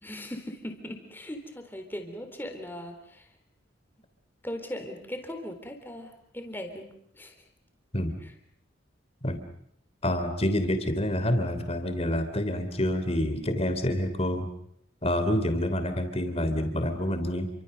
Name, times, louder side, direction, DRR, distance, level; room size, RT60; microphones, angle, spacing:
voice 1, 0.0-3.3 4.4-7.3 8.2-8.3, left 1 dB, 10° left, 5 dB, 3.8 m, -39 dB
voice 2, 10.0-14.5 15.0-17.5, left 1 dB, 30° left, 8 dB, 3.2 m, -27 dB
30.0 x 24.5 x 6.8 m, 0.71 s
head